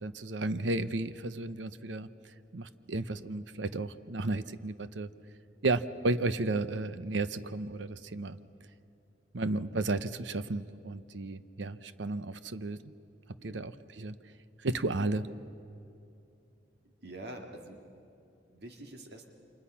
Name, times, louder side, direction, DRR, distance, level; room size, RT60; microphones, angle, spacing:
voice 1, 0.0-2.1 2.5-5.1 5.6-8.4 9.3-12.8 13.4-14.2 14.6-15.3, right 2 dB, 80° right, 12 dB, 0.8 m, -33 dB
voice 2, 13.4-13.7 16.8-17.8 18.5-19.3, right 1 dB, 60° right, 3 dB, 2.3 m, -46 dB
29.0 x 26.5 x 5.8 m, 2.7 s
head